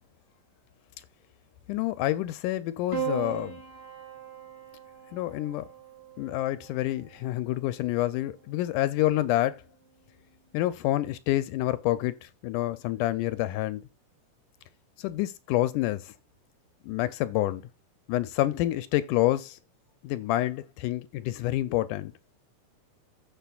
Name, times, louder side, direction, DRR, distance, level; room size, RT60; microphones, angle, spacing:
voice 1, 1.7-3.6 5.1-5.7 6.2-9.6 10.5-13.8 15.0-16.1 16.8-17.6 18.1-19.6 20.0-22.1, left 15 dB, 80° left, 2.0 m, -28 dB
Piano, 2.9-7.4 8.6-9.3, right 7 dB, 15° left, 1.9 m, -38 dB
15.0 x 5.9 x 2.3 m
omnidirectional pair, 3.7 m